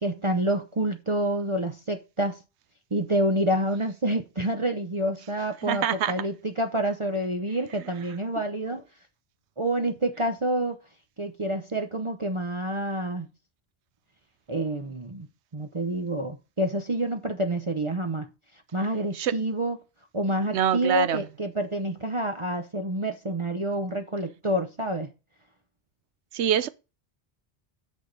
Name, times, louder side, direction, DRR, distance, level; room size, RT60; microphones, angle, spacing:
voice 1, 0.0-2.4 2.9-8.8 9.6-10.8 11.2-13.3 14.5-15.3 15.5-18.3 18.7-19.8 20.1-25.1, right 1 dB, 30° right, 0.8 m, -28 dB
voice 2, 5.6-6.1 19.1-19.4 20.5-21.2 26.3-26.7, right 10 dB, 85° right, 1.0 m, -25 dB
8.4 x 6.3 x 3.9 m
omnidirectional pair, 1.1 m